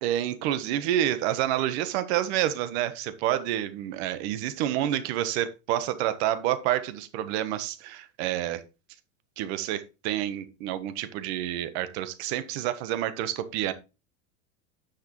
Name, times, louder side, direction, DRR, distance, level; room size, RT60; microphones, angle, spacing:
voice 1, 0.0-8.6 9.4-13.7, right 12 dB, 60° right, 1.3 m, -28 dB
10.0 x 6.5 x 3.1 m
supercardioid pair, 130°, 36 cm